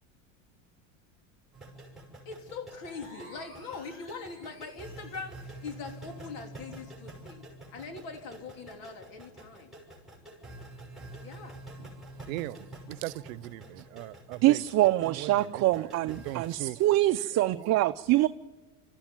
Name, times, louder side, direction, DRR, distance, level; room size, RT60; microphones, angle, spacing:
sound 1, 1.5-16.5, right 1 dB, ahead, 6.2 m, -48 dB
voice 1, 2.3-9.7 11.2-11.6, left 4 dB, 65° left, 3.4 m, -42 dB
sound 2, 2.7-5.4, equal, 30° left, 6.2 m, -54 dB
voice 2, 12.3-14.6 15.1-16.8 17.5-17.7, right 19 dB, 85° right, 0.8 m, -39 dB
voice 3, 14.4-18.3, right 16 dB, 40° right, 0.6 m, -24 dB
25.0 x 14.5 x 9.4 m
supercardioid pair, 125°, 39 cm